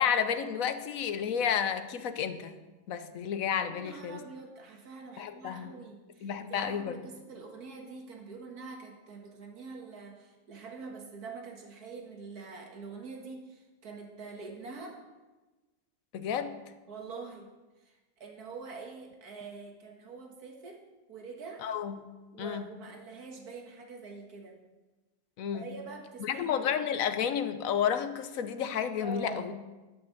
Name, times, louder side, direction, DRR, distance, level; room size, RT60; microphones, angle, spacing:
voice 1, 0.0-2.6 2.9-4.2 5.2-5.7 6.2-7.0 16.1-16.6 21.6-22.1 22.4-22.7 25.4-25.7 26.2-29.5, left 8 dB, 70° left, 10 dB, 1.1 m, -31 dB
voice 2, 3.7-15.0 16.9-17.5 17.9-20.8 21.1-21.6 22.3-24.6 25.5-26.7 29.0-29.4, right 4 dB, 85° right, 1 dB, 2.1 m, -45 dB
11.5 x 6.0 x 7.7 m, 1.2 s
omnidirectional pair, 1.6 m